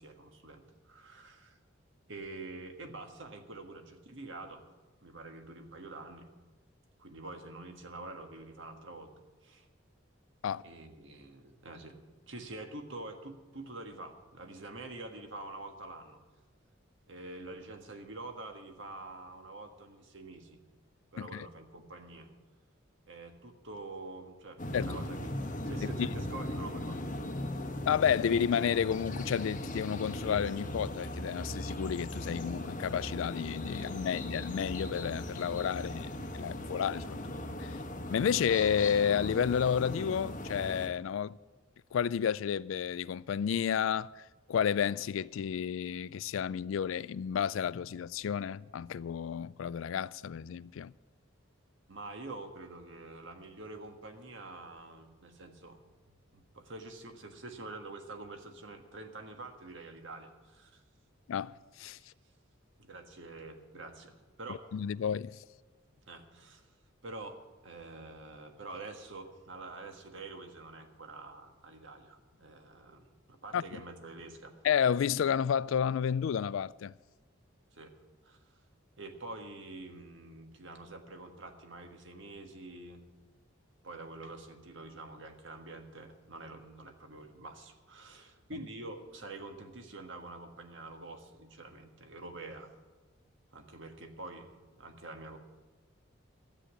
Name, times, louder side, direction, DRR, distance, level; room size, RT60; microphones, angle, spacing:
voice 1, 0.0-1.6 2.1-4.6 5.0-6.3 7.0-9.6 10.6-12.0 12.3-16.2 17.1-20.6 21.1-22.3 23.1-25.3 25.6-27.3 51.9-55.8 56.3-60.8 62.0-62.1 62.8-64.6 66.1-66.7 67.0-67.4 67.6-74.6 77.7-77.9 78.2-78.4 79.0-83.0 83.8-92.7 93.5-95.4, right 2 dB, 65° right, 1.6 m, -46 dB
sound 1, 24.6-40.9, left 1 dB, 40° left, 1.1 m, -38 dB
voice 2, 27.9-37.3 37.6-37.8 38.1-41.4 41.9-44.2 44.5-50.9 61.3-62.0 64.5-65.4 73.5-73.6 74.6-76.9, left 8 dB, 75° left, 0.3 m, -31 dB
13.0 x 8.2 x 8.7 m
head